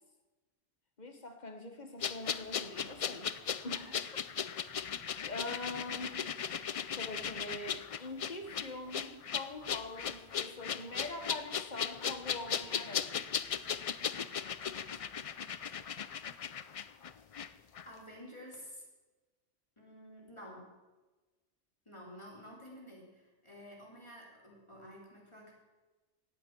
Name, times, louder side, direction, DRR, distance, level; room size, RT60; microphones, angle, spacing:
voice 1, 1.0-3.3 3.6-4.0 5.2-6.2 6.9-13.4, left 2 dB, 40° left, 5 dB, 1.5 m, -43 dB
sound 1, 2.0-17.5 17.8-17.9, left 7 dB, 60° left, 0.3 m, -37 dB
voice 2, 17.8-18.8 19.8-20.7 21.9-25.5, equal, 25° left, -2 dB, 3.4 m, -51 dB
17.0 x 8.6 x 6.1 m, 1.2 s
omnidirectional pair, 1.2 m